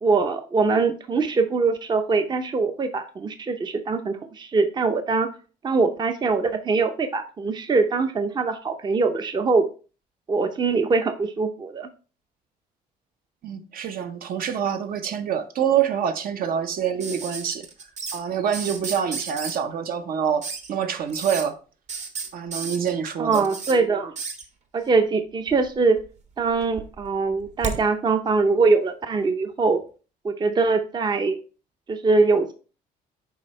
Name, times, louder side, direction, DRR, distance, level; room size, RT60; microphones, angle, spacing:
voice 1, 0.0-5.3 5.6-9.7 10.3-11.9 23.2-24.1 24.7-26.0 26.4-29.8 30.2-31.4 31.9-32.5, right 4 dB, 25° right, 0.6 m, -22 dB
voice 2, 13.4-17.7 18.1-21.6 22.3-23.5, right 8 dB, 60° right, 0.8 m, -26 dB
sound 1, 17.0-18.2 18.5-19.6 20.4-20.7 21.1-21.4 21.9-23.7 24.2-24.4 25.5-26.1 26.4-27.8 29.2-29.3, right 5 dB, 40° right, 1.1 m, -33 dB
7.1 x 4.7 x 3.2 m
cardioid pair, 110°, 17 cm